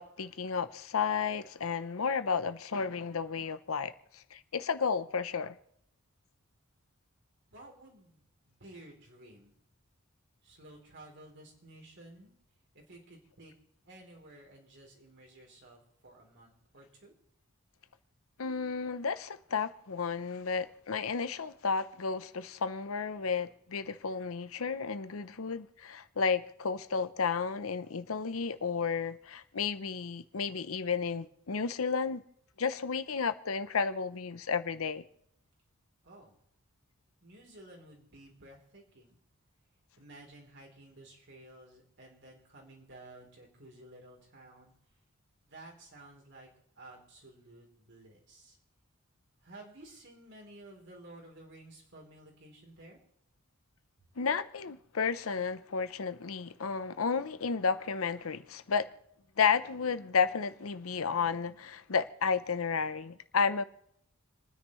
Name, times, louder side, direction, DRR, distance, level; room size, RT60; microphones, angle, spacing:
voice 1, 0.0-5.6 18.4-32.2 32.6-35.0 54.2-58.9 59.4-63.6, left 5 dB, 80° left, 0.7 m, -32 dB
voice 2, 7.5-9.6 10.4-12.3 12.7-13.5 13.9-17.1 36.0-36.4 37.2-39.2 40.0-44.7 45.5-46.5 46.8-48.6 49.4-53.0, right 1 dB, 55° right, 3.6 m, -53 dB
29.5 x 9.9 x 3.2 m
head